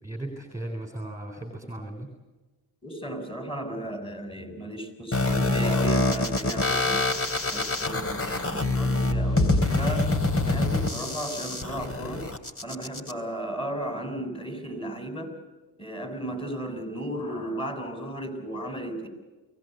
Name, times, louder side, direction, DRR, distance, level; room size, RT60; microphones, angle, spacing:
voice 1, 0.0-2.1, right 1 dB, 5° right, 5 dB, 3.8 m, -36 dB
voice 2, 2.8-7.0 7.4-10.1 10.4-12.2 12.6-15.3 15.8-19.1, right 1 dB, 10° left, 6 dB, 6.9 m, -35 dB
sound 1, 5.1-13.1, left 2 dB, 25° left, 3.1 m, -25 dB
24.5 x 18.0 x 8.0 m, 1.2 s
supercardioid pair, 65°, 49 cm